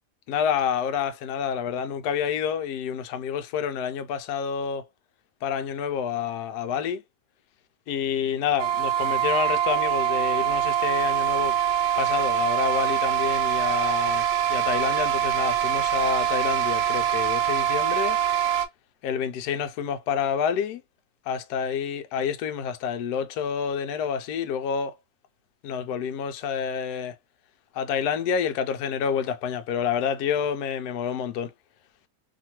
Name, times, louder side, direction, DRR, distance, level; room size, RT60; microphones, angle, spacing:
voice 1, 0.3-4.8 5.4-7.0 7.9-11.5 12.0-14.2 14.5-18.2 19.0-20.8 21.3-25.0 25.6-27.1 27.7-31.5, left 7 dB, 75° left, 1.1 m, -28 dB
sound 1, 8.6-18.7, right 10 dB, 90° right, 1.2 m, -24 dB
2.8 x 2.5 x 2.8 m
omnidirectional pair, 1.8 m